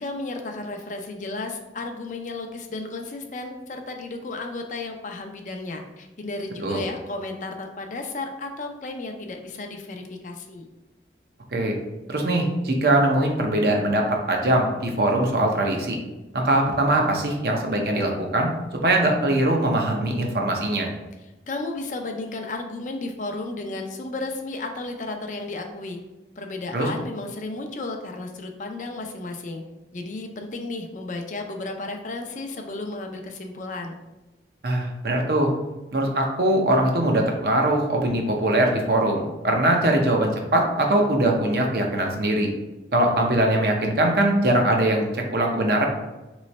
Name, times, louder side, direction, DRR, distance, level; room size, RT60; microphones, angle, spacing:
voice 1, 0.0-10.7 21.5-26.0 26.4-29.6 29.9-34.0, left 2 dB, 45° left, 4 dB, 0.4 m, -33 dB
voice 2, 12.1-16.0 16.3-18.5 18.8-20.9 26.7-26.9 34.6-35.5 35.9-42.5 42.9-45.8, right 1 dB, 60° right, 1 dB, 0.7 m, -21 dB
3.2 x 3.1 x 4.1 m, 1.1 s
head